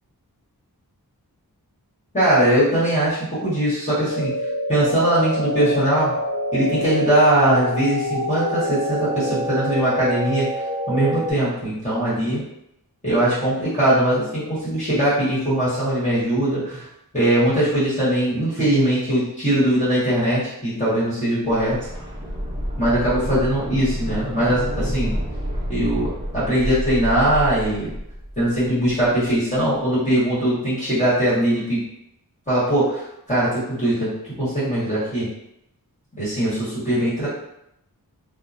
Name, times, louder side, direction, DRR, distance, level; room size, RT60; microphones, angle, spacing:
voice 1, 2.1-4.3 4.7-6.1 6.5-10.5 10.9-12.4 13.0-16.9 17.1-21.8 22.8-25.2 25.7-27.9 28.4-31.8 32.5-34.1 34.4-35.3 36.2-37.3, right 1 dB, 20° left, -11 dB, 1.3 m, -20 dB
sound 1, 4.1-11.3, equal, 55° left, 1.0 m, -26 dB
sound 2, 21.4-29.2 29.5-29.6, equal, 15° right, 0.6 m, -29 dB
2.8 x 2.1 x 2.6 m, 0.79 s
wide cardioid pair, 85°, 36 cm